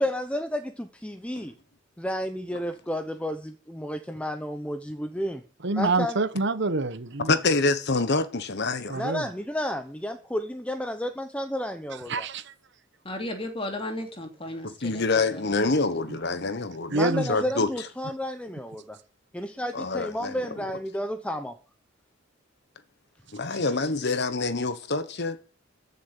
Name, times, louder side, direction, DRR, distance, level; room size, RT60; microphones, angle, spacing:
voice 1, 0.0-1.5 2.0-5.4 5.8-6.2 8.9-12.3 16.9-19.0 19.3-21.6, equal, 5° left, 0.9 m, -31 dB
voice 2, 5.6-7.3 8.9-9.2 12.1-12.5 16.1-16.2 16.9-17.3 23.5-23.6, right 3 dB, 60° right, 1.1 m, -27 dB
voice 3, 7.3-9.0 14.6-16.9 17.3-17.7 19.7-20.4 23.3-25.4, left 3 dB, 55° left, 1.2 m, -26 dB
voice 4, 13.0-15.5, left 1 dB, 30° left, 3.1 m, -35 dB
15.0 x 7.0 x 9.9 m
head